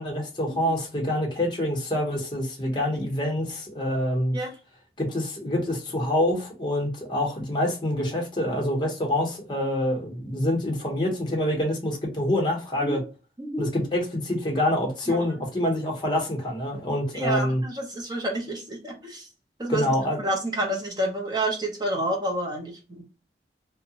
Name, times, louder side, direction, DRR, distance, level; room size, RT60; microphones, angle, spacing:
voice 1, 0.0-4.4 5.0-13.0 13.6-17.6 19.7-20.2, left 1 dB, 25° left, 0.8 m, -26 dB
voice 2, 17.1-19.3 19.6-19.8 20.2-23.0, right 1 dB, 25° right, 0.7 m, -29 dB
2.7 x 2.1 x 2.8 m
head